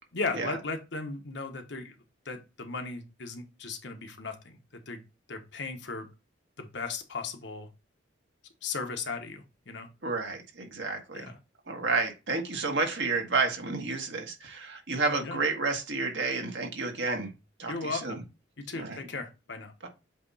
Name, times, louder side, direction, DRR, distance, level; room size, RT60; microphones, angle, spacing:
voice 1, 0.1-1.9 2.2-5.0 5.3-6.1 6.6-7.7 8.6-9.9 11.1-11.4 15.2-15.4 17.7-18.2 18.6-19.7, left 4 dB, 65° left, 5 dB, 1.2 m, -36 dB
voice 2, 10.0-11.3 11.7-17.3 17.6-18.2 18.7-19.0 19.8-19.9, right 3 dB, 70° right, 3 dB, 1.6 m, -30 dB
7.9 x 3.0 x 4.1 m, 0.27 s
head